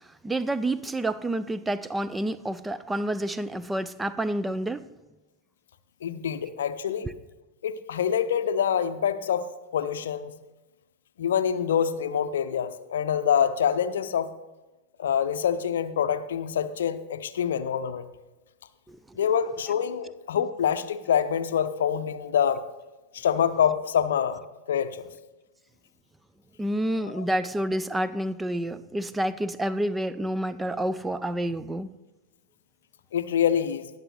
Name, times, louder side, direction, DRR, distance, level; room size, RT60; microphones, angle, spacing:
voice 1, 0.2-4.8 7.0-7.1 18.9-19.0 26.6-31.9, right 1 dB, 10° right, 15 dB, 0.3 m, -29 dB
voice 2, 6.0-7.1 7.6-9.5 9.7-10.3 11.2-14.3 15.0-18.1 19.2-22.6 23.1-24.4 24.7-25.1 27.0-27.2 33.1-33.9, left 8 dB, 60° left, 11 dB, 0.6 m, -26 dB
19.5 x 6.8 x 3.2 m, 1.1 s
figure-of-eight pair, 90°, 0 cm